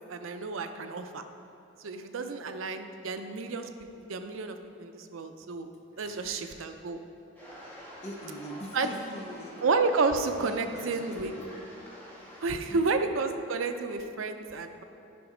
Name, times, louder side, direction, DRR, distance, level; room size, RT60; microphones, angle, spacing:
voice 1, 0.1-1.2 1.8-3.7 4.0-5.7 6.0-7.0 8.7-8.9 9.6-11.3 12.4-14.8, right 4 dB, 90° right, 7 dB, 0.5 m, -31 dB
voice 2, 5.9-6.5 8.0-9.7 10.4-11.3 12.5-12.9, equal, 35° left, -2 dB, 0.9 m, -43 dB
sound 1, 7.4-12.5, equal, 10° left, 1.5 m, -48 dB
9.4 x 5.1 x 4.9 m, 2.9 s
head